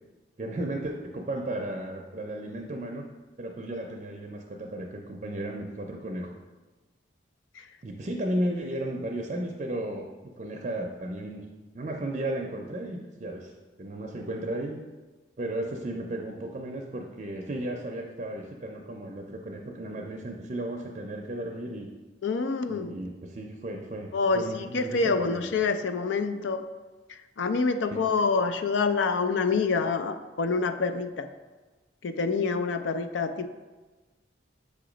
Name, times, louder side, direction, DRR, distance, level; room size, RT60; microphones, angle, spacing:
voice 1, 0.4-3.0 3.4-6.4 7.8-11.4 11.7-13.5 13.8-14.8 15.4-21.9 22.7-25.5 27.9-28.0, right 1 dB, 40° right, 1 dB, 0.4 m, -34 dB
voice 2, 22.2-22.9 24.1-26.6 27.4-31.3 32.0-33.5, left 4 dB, 85° left, 9 dB, 0.4 m, -27 dB
6.6 x 2.9 x 5.0 m, 1.2 s
head